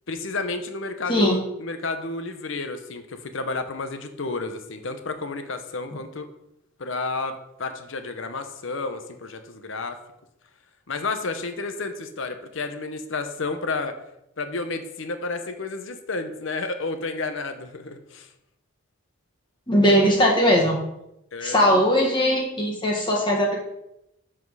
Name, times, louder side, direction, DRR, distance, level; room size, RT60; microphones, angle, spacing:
voice 1, 0.1-6.3 6.8-10.0 10.9-13.9 14.4-18.3 21.3-21.6, left 3 dB, 65° left, 8 dB, 0.8 m, -31 dB
voice 2, 19.7-20.8 21.4-23.6, equal, 20° left, -1 dB, 1.6 m, -19 dB
7.2 x 6.0 x 4.8 m, 0.84 s
head